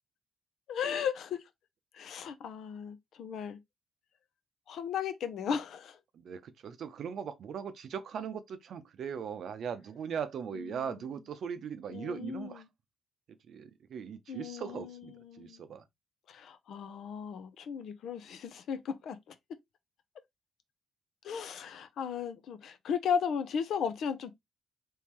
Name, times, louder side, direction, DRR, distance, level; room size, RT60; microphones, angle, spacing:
voice 1, 0.7-1.4 1.9-3.6 4.7-6.0 10.5-11.0 11.9-12.7 14.3-15.6 16.3-19.3 21.2-24.3, left 7 dB, 70° left, 0.6 m, -36 dB
voice 2, 6.1-12.6 13.4-15.8, right 7 dB, 65° right, 0.6 m, -39 dB
3.7 x 3.0 x 3.0 m
cardioid pair, 90°, 0 cm